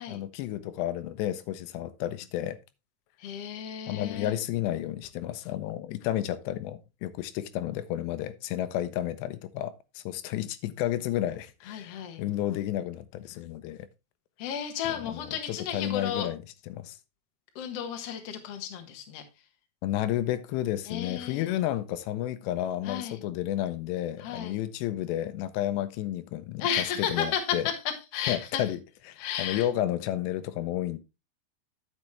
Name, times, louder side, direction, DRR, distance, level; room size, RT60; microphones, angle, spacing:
voice 1, 0.0-2.6 3.9-13.9 14.9-17.0 19.8-27.7 28.3-28.8 29.1-31.0, left 13 dB, 80° left, 2.8 m, -32 dB
voice 2, 3.2-4.3 11.7-12.2 14.4-16.3 17.5-19.2 20.9-21.5 22.8-23.2 24.2-24.6 26.6-27.7 28.1-28.6 29.2-29.7, left 8 dB, 60° left, 1.7 m, -33 dB
10.5 x 7.2 x 3.2 m
omnidirectional pair, 5.0 m